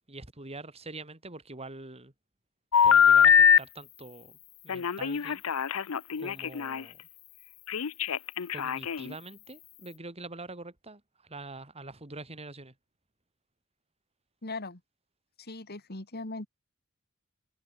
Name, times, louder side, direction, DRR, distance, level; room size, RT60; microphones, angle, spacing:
voice 1, 0.1-2.1 2.8-4.4 4.6-5.4 6.2-7.0 8.5-12.7, right 2 dB, 30° right, 3.4 m, -44 dB
Telephone, 2.7-3.6 4.7-6.8 7.7-9.1, left 9 dB, 80° left, 0.7 m, -22 dB
voice 2, 14.4-14.8 15.4-16.5, left 2 dB, 50° left, 2.7 m, -39 dB
head